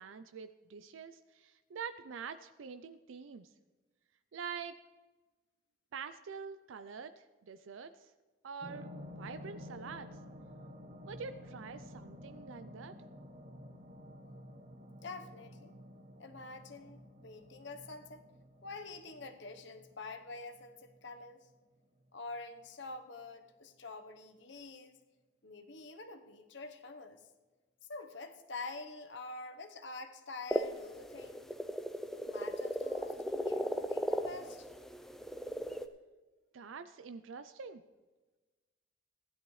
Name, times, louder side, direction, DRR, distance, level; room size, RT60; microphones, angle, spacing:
voice 1, 0.0-3.5 4.3-4.8 5.9-8.1 8.4-10.2 11.1-13.0 36.5-37.8, right 6 dB, 80° right, 11 dB, 0.4 m, -46 dB
sound 1, 8.6-21.6 22.0-22.1, left 1 dB, 35° right, 1.0 m, -52 dB
voice 2, 15.0-15.7 16.2-18.2 18.6-21.5 22.1-25.0 25.4-27.2 27.9-31.5 32.1-34.7, left 3 dB, 65° left, 8 dB, 0.9 m, -47 dB
sound 2, 30.5-35.9, equal, ahead, 0.4 m, -36 dB
16.0 x 11.0 x 3.2 m, 1.3 s
head